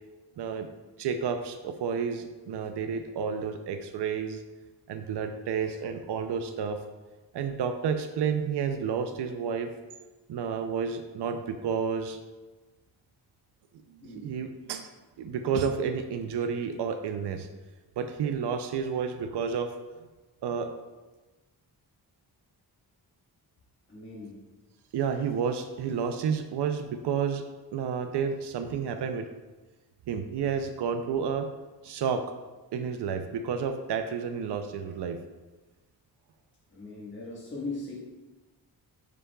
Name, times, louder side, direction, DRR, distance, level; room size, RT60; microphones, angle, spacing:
voice 1, 0.4-0.7 1.0-4.4 4.9-6.8 7.3-9.7 10.3-12.2 14.0-14.9 15.2-17.5 18.0-19.7 20.4-20.7 24.9-27.4 27.7-29.3 30.1-31.5 31.8-32.2 32.7-35.2, right 6 dB, 90° right, 7 dB, 0.6 m, -30 dB
voice 2, 14.0-14.3 23.9-24.4 36.7-37.9, left 3 dB, 30° left, -6 dB, 1.4 m, -39 dB
9.8 x 5.0 x 2.3 m, 1.2 s
wide cardioid pair, 115°, 39 cm